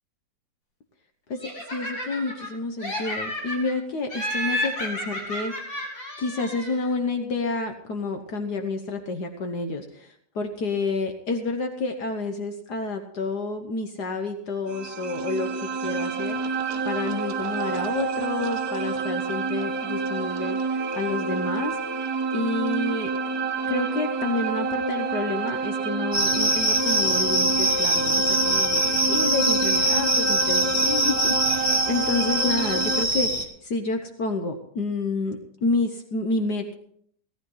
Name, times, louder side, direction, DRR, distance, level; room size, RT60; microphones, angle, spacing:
Laughter, 1.4-2.5 2.8-3.7 4.1-6.9, left 1 dB, 90° left, 6.8 m, -31 dB
voice 1, 1.7-5.5 6.2-16.4 16.8-21.8 22.3-23.1 23.7-36.7, left 3 dB, 65° left, 5 dB, 1.7 m, -29 dB
sound 1, 14.7-33.0, right 4 dB, 60° right, 1.3 m, -28 dB
sound 2, 26.1-33.4, right 1 dB, 10° right, 1.9 m, -23 dB
18.0 x 13.0 x 3.9 m, 0.65 s
omnidirectional pair, 1.9 m